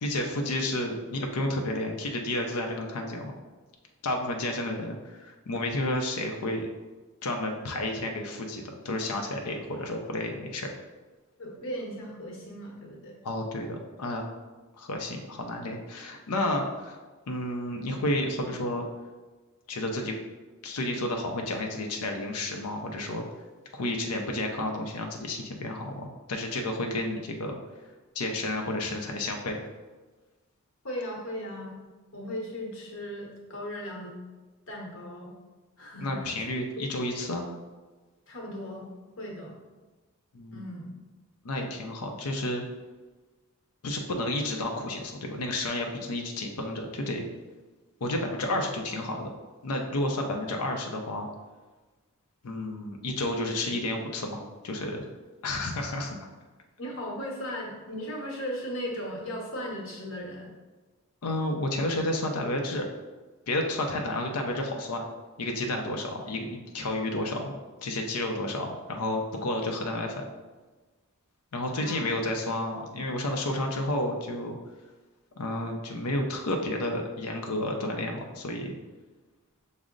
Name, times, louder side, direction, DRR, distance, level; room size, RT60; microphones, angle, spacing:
voice 1, 0.0-3.3 4.0-6.7 7.2-10.7 13.2-14.3 14.8-17.0 17.3-18.8 19.7-20.1 20.6-23.2 23.7-27.6 28.1-29.6 36.0-37.4 40.3-40.7 41.4-42.6 43.8-47.2 48.0-49.3 49.6-51.3 52.4-55.1 55.4-56.3 61.2-62.9 63.5-65.0 65.4-67.5 67.8-70.2 71.5-74.6 75.4-78.7, left 1 dB, 90° left, 2 dB, 0.5 m, -31 dB
voice 2, 11.4-13.1 30.8-31.8 32.1-34.1 34.7-35.3 35.8-36.3 36.7-36.8 38.3-38.9 39.2-39.6 40.5-40.8 56.8-60.5 71.7-72.0, equal, 60° left, -1 dB, 1.0 m, -37 dB
6.1 x 2.0 x 3.7 m, 1.3 s
head